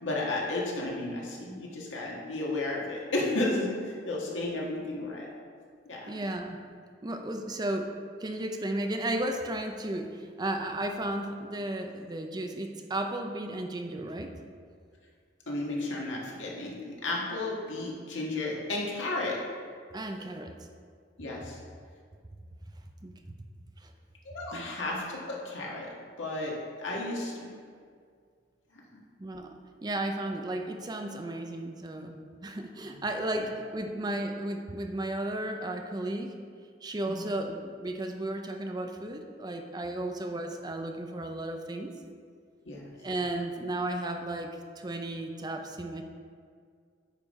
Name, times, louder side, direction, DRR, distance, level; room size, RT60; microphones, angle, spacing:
voice 1, 0.0-5.3 5.9-6.1 15.5-19.4 21.2-21.6 24.2-25.9 26.2-27.5 28.9-29.0 33.4-33.5 37.1-37.3 42.6-42.9, left 2 dB, 85° left, -3 dB, 1.7 m, -33 dB
voice 2, 6.1-6.6 7.0-7.9 8.2-14.3 19.9-20.5 23.0-23.4 23.8-23.9 24.5-24.7 29.2-36.3 36.8-41.9 43.0-46.0, right 1 dB, 20° right, 5 dB, 0.5 m, -34 dB
9.1 x 5.2 x 4.2 m, 2.1 s
head